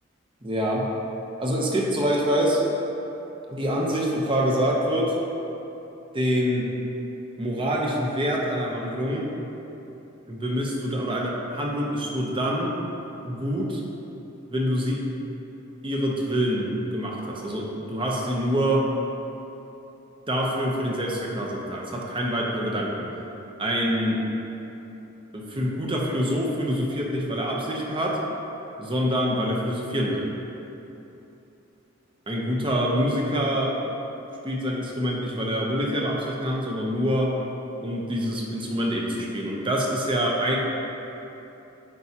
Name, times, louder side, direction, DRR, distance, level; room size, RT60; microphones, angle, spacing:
voice 1, 0.4-0.9 1.4-2.6 3.5-5.2 6.1-6.7 7.4-9.2 10.3-12.7 13.2-13.8 14.5-15.0 15.8-18.9 20.3-23.1 23.6-24.2 25.3-28.2 28.8-30.3 32.3-33.7 34.4-37.4 37.8-40.6, equal, 25° right, -2 dB, 0.8 m, -25 dB
8.5 x 4.8 x 2.9 m, 3.0 s
head